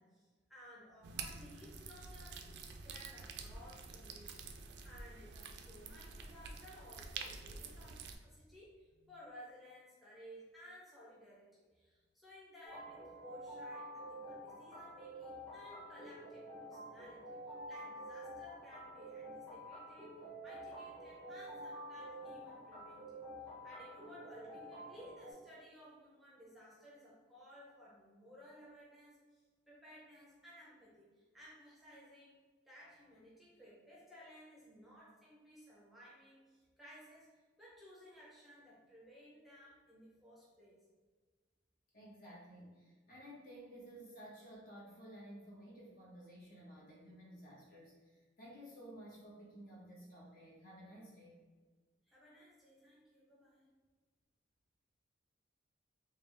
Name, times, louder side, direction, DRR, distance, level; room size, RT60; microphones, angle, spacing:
voice 1, 0.0-23.3 23.6-32.4 32.6-37.3 37.6-40.8 52.1-53.8, equal, ahead, -6 dB, 0.7 m, -58 dB
sound 1, 1.0-8.1, right 5 dB, 60° right, 0.4 m, -48 dB
sound 2, 12.6-25.3, right 1 dB, 20° left, 1.3 m, -49 dB
voice 2, 41.9-51.4, right 1 dB, 50° left, -5 dB, 1.2 m, -54 dB
3.7 x 2.4 x 3.3 m, 1.4 s
head